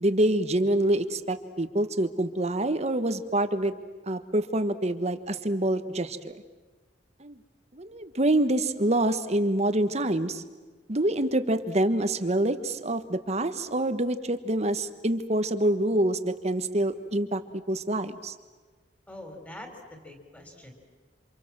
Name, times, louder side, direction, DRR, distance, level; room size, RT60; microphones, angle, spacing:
voice 1, 0.0-3.7 4.1-6.3 7.2-7.4 7.7-10.4 10.9-17.4 17.7-18.3, right 1 dB, 35° right, 10 dB, 1.4 m, -26 dB
voice 2, 19.1-20.7, left 1 dB, 10° left, 4 dB, 4.2 m, -44 dB
28.0 x 27.0 x 7.6 m, 1.3 s
head